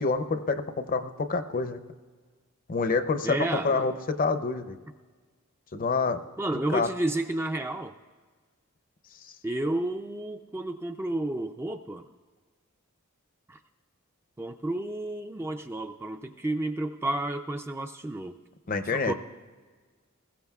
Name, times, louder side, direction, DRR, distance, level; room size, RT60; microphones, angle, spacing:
voice 1, 0.0-1.8 2.7-4.8 5.7-6.2 6.7-6.9 18.7-19.1, left 4 dB, 40° left, 9 dB, 0.6 m, -27 dB
voice 2, 3.2-3.9 6.4-8.0 9.4-12.0 13.5-13.6 14.4-18.4 18.9-19.1, right 1 dB, 10° right, 5 dB, 0.4 m, -31 dB
20.5 x 15.5 x 2.3 m, 1.5 s
head